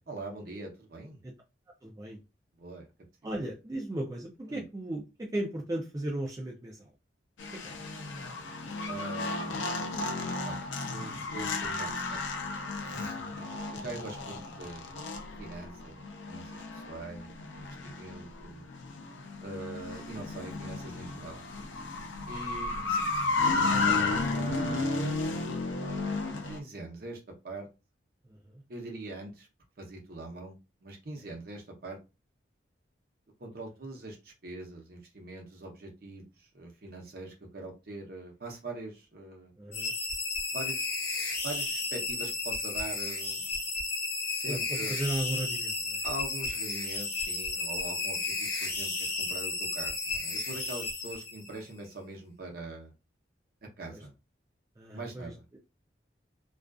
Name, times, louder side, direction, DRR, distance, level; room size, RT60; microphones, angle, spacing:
voice 1, 0.1-1.2 2.6-2.9 4.5-4.6 8.9-9.5 10.4-12.5 12.8-13.5 13.7-15.0 15.4-18.6 19.4-21.4 22.2-23.0 23.7-25.2 26.4-27.7 28.7-29.5 29.8-32.0 33.4-39.5 40.5-40.9 41.4-43.4 44.3-44.9 46.0-52.9 53.8-54.1 54.9-55.3, right 2 dB, 55° right, 1 dB, 0.7 m, -43 dB
voice 2, 1.8-2.2 3.2-6.9 7.5-8.0 13.2-14.1 18.2-18.3 28.2-28.6 39.6-39.9 44.5-46.0 53.9-54.1 54.8-55.6, right 1 dB, 20° right, -1 dB, 0.4 m, -37 dB
sound 1, 7.4-26.6, left 3 dB, 90° left, 0.5 m, -33 dB
sound 2, 39.7-51.6, left 3 dB, 55° left, 0.9 m, -33 dB
2.4 x 2.4 x 2.3 m, 0.27 s
head